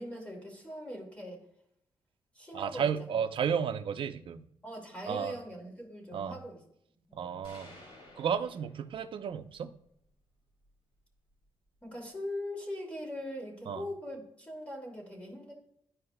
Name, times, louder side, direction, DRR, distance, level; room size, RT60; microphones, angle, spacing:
voice 1, 0.0-1.4 2.3-2.9 4.6-6.6 7.1-7.5 11.8-15.5, left 1 dB, 10° left, -1 dB, 2.4 m, -41 dB
voice 2, 2.5-4.4 5.1-5.3 6.1-6.4 7.1-7.7 8.2-9.7 13.7-13.8, right 7 dB, 60° right, 8 dB, 0.6 m, -33 dB
sound 1, 7.4-9.4, left 1 dB, 60° left, 3.0 m, -54 dB
12.5 x 4.7 x 2.2 m, 0.71 s
cardioid pair, 130°, 10 cm